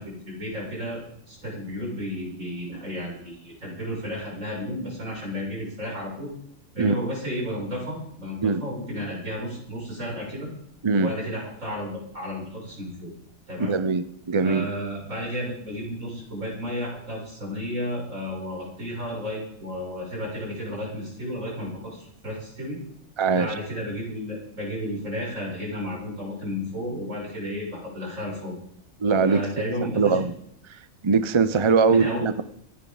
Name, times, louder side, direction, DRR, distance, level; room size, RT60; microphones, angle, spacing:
voice 1, 0.0-6.3 6.7-10.5 10.9-13.1 13.5-13.8 14.4-22.8 23.3-28.5 29.2-30.2 31.9-32.3, equal, 75° right, -4 dB, 7.4 m, -32 dB
voice 2, 13.6-14.7 23.2-23.5 29.0-30.3 31.0-32.4, right 4 dB, 30° right, 12 dB, 0.5 m, -22 dB
25.5 x 10.5 x 4.0 m, 0.72 s
omnidirectional pair, 1.4 m